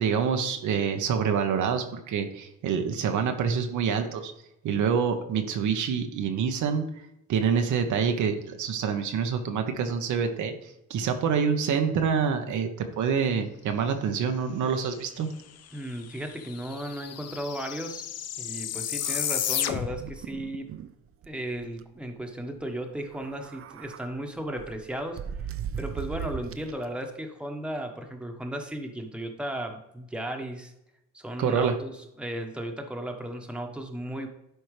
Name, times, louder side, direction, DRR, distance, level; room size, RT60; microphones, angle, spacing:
voice 1, 0.0-4.3 4.6-6.8 7.3-15.3 19.0-19.2 31.4-31.7, right 6 dB, 75° right, 5 dB, 1.0 m, -26 dB
sound 1, 15.7-15.8 15.9-20.2, left 10 dB, 55° left, 0.6 m, -32 dB
voice 2, 15.7-18.0 18.4-20.7 21.3-25.2 25.8-30.7 31.1-34.3, right 1 dB, 5° right, 3 dB, 1.1 m, -35 dB
sound 2, 19.9-20.9 21.2-21.3 21.6-21.8 23.0-24.1 24.6-26.8, right 8 dB, 50° right, 0.5 m, -37 dB
11.0 x 4.5 x 3.2 m, 0.86 s
cardioid pair, 90°, 30 cm